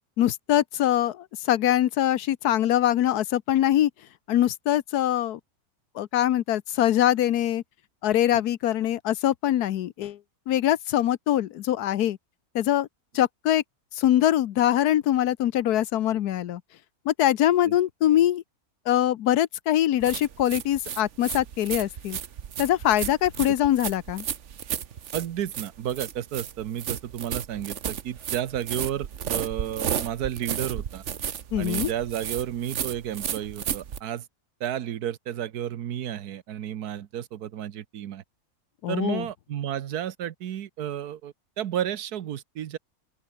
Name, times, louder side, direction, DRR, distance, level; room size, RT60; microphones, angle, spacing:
voice 1, 0.2-3.9 4.3-5.4 6.0-7.6 8.0-10.2 10.5-12.2 12.5-12.9 13.1-13.6 14.0-16.6 17.1-18.4 18.9-22.2 22.6-24.2 31.5-31.9 38.8-39.2, left 12 dB, 85° left, 1.3 m, -23 dB
sound 1, 20.0-34.0, right 8 dB, 55° right, 1.2 m, -33 dB
voice 2, 25.1-31.0 31.6-34.3 34.6-38.2 38.9-42.8, right 10 dB, 85° right, 1.5 m, -32 dB
open air
omnidirectional pair, 1.6 m